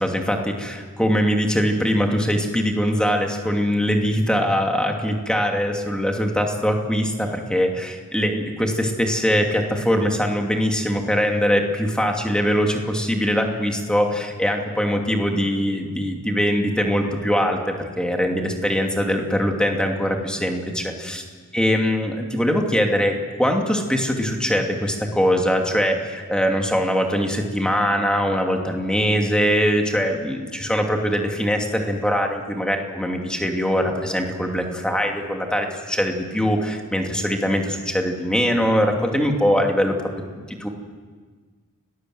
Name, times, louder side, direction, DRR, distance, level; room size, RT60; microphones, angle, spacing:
voice 1, 0.0-21.2 21.5-40.0 40.3-40.7, equal, 5° left, 2 dB, 2.5 m, -22 dB
29.5 x 19.5 x 7.9 m, 1.5 s
head